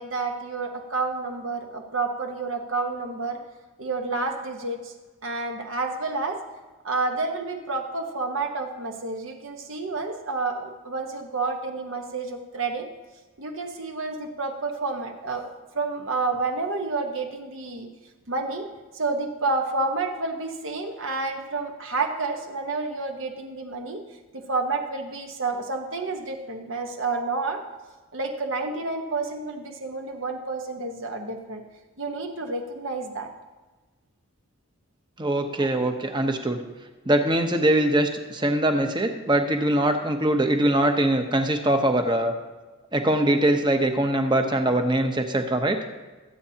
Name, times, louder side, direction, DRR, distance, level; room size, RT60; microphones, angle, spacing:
voice 1, 0.0-3.4 3.8-4.9 5.2-6.4 6.8-12.9 13.4-17.9 18.3-18.7 18.9-24.0 24.3-27.6 28.1-31.6 32.0-33.3 35.5-35.7, right 3 dB, 65° right, 3 dB, 1.2 m, -29 dB
voice 2, 35.2-36.6 37.1-42.3 42.9-45.8, right 1 dB, 20° right, 5 dB, 0.9 m, -22 dB
22.0 x 8.5 x 2.9 m, 1.3 s
head